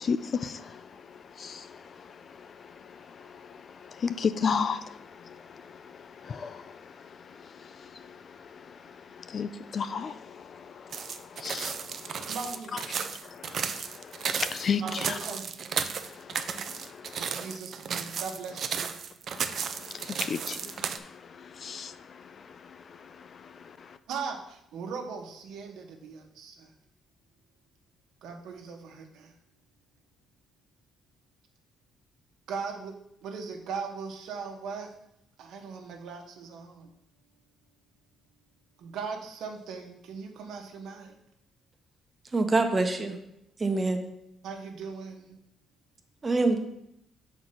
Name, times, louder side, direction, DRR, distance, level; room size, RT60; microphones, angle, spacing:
voice 1, 0.0-12.4 12.7-15.2 16.0-17.6 19.3-24.0, left 6 dB, 50° left, 0.5 m, -36 dB
sound 1, 10.9-21.0, right 7 dB, 60° right, 0.6 m, -34 dB
voice 2, 12.2-12.7 14.8-15.5 17.2-18.9 24.1-26.7 28.2-29.3 32.5-34.9 35.4-36.9 38.8-41.1 44.4-45.4, right 5 dB, 85° right, 1.2 m, -39 dB
voice 3, 42.2-43.2 43.6-44.0 46.2-46.6, right 3 dB, 30° right, 1.0 m, -25 dB
6.4 x 4.5 x 5.5 m
cardioid pair, 90°, 0 cm